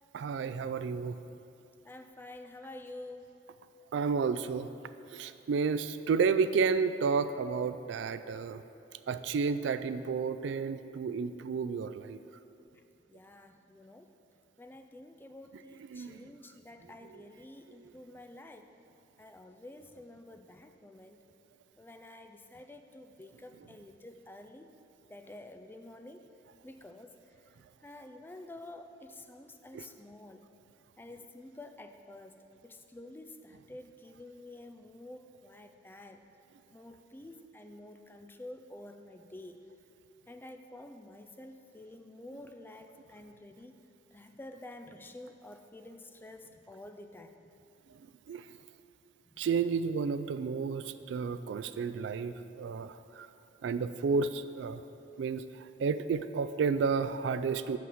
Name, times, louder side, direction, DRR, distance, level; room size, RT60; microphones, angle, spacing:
voice 1, 0.1-1.2 3.9-4.7 5.1-8.6 9.1-12.2 15.9-16.3 29.7-29.8 48.3-48.4 49.4-53.3 53.6-54.8 55.2-57.8, right 5 dB, 70° right, 13 dB, 0.3 m, -31 dB
voice 2, 1.8-3.4 13.1-14.1 14.6-18.7 19.2-21.2 21.8-24.7 25.1-26.3 26.6-27.2 27.8-30.5 31.0-36.3 36.7-39.7 40.3-43.8 44.1-47.4 49.3-49.4, left 1 dB, 10° left, 7 dB, 0.3 m, -49 dB
6.2 x 5.8 x 7.2 m, 2.7 s
head